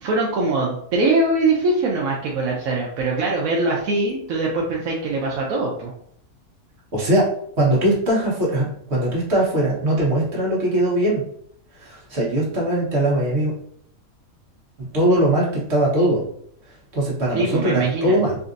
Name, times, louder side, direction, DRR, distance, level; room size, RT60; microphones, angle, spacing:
voice 1, 0.0-5.9 17.3-18.2, right 2 dB, 75° right, -2 dB, 1.0 m, -22 dB
voice 2, 6.9-7.2 7.6-11.2 11.8-13.5 14.9-16.2 16.9-18.4, right 1 dB, 50° right, -5 dB, 1.5 m, -20 dB
3.9 x 2.5 x 2.5 m, 0.67 s
omnidirectional pair, 1.4 m